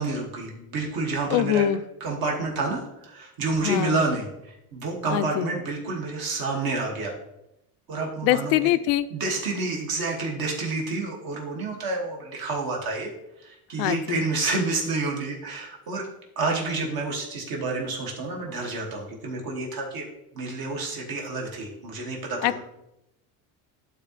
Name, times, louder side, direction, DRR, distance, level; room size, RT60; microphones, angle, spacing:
voice 1, 0.0-1.7 2.0-7.1 7.9-8.7 9.1-13.1 13.4-16.1 16.4-20.1 20.3-22.6, right 3 dB, 50° right, -1 dB, 2.2 m, -29 dB
voice 2, 1.3-1.8 3.6-4.0 5.1-5.5 8.2-9.1 13.8-14.3 22.4-22.6, left 13 dB, 85° left, 12 dB, 0.6 m, -23 dB
11.5 x 4.2 x 3.3 m, 0.85 s
supercardioid pair, 110°, 45 cm